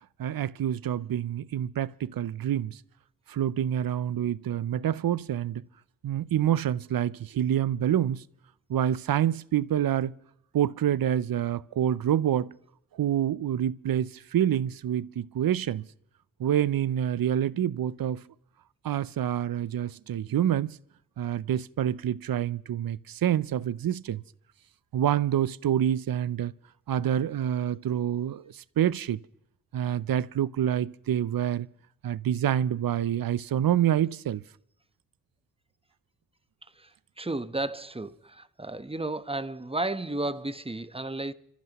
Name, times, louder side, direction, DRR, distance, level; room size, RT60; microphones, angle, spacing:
voice 1, 0.2-2.8 3.3-5.6 6.0-8.2 8.7-10.2 10.5-12.6 12.9-15.8 16.4-18.2 18.8-20.8 21.2-24.2 24.9-26.5 26.9-29.2 29.7-31.7 32.0-34.4, right 10 dB, 90° right, 0.5 m, -27 dB
voice 2, 37.2-41.3, right 2 dB, 15° right, 0.9 m, -33 dB
28.0 x 14.5 x 3.0 m
cardioid pair, 45°, 34 cm